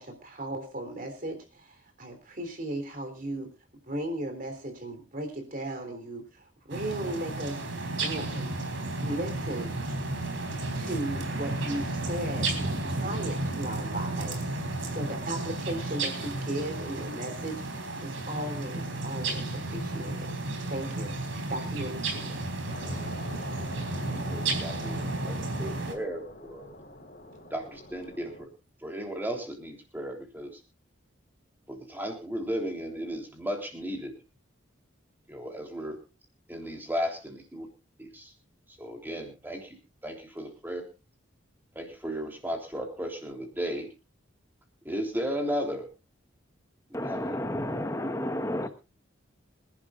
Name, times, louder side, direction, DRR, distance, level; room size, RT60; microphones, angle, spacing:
voice 1, 0.0-3.5 3.8-8.6 9.0-9.8 10.7-14.4 14.9-20.3 20.7-21.2 21.5-22.5, right 1 dB, 45° right, 6 dB, 3.5 m, -36 dB
sound 1, 6.7-25.9, right 2 dB, 75° right, 3.8 m, -33 dB
sound 2, 22.7-28.5, left 1 dB, 45° left, 4.4 m, -47 dB
voice 2, 24.1-26.6 27.5-28.5 28.8-30.6 31.7-34.1 35.3-36.0 36.5-37.7 38.0-38.3 38.8-39.8 40.0-40.8 41.7-43.9 44.8-45.9 46.9-47.3 48.6-48.7, equal, 10° right, 1 dB, 3.4 m, -35 dB
voice 3, 46.9-48.7, left 1 dB, 15° left, 7 dB, 1.2 m, -31 dB
25.5 x 11.5 x 2.5 m, 0.30 s
head